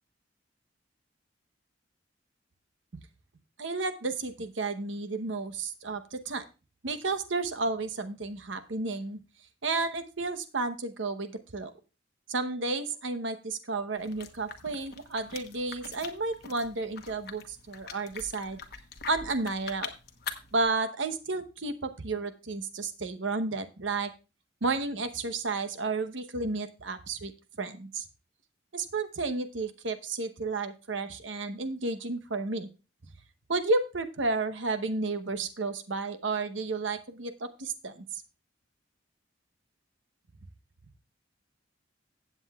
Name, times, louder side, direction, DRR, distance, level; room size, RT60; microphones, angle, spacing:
voice 1, 3.6-6.4 6.8-9.2 9.6-11.7 12.3-18.6 19.1-19.9 20.5-24.1 24.6-27.3 27.6-28.1 28.7-32.7 33.5-38.2, right 3 dB, 75° right, 9 dB, 0.9 m, -32 dB
sound 1, 14.0-20.6, left 6 dB, 55° left, 1.1 m, -44 dB
15.5 x 8.0 x 2.3 m, 0.30 s
head